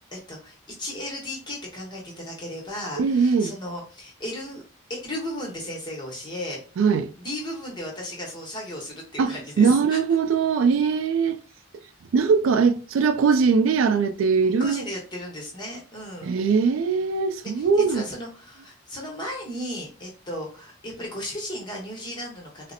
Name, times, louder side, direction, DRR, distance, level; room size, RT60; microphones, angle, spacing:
voice 1, 0.1-4.6 4.9-6.6 7.2-10.0 14.4-16.3 17.4-22.7, left 1 dB, 20° left, 1.0 m, -35 dB
voice 2, 3.0-3.6 6.8-7.1 9.2-11.4 12.1-14.8 16.2-18.0, right 5 dB, 80° right, 0.3 m, -21 dB
4.1 x 2.0 x 2.6 m
head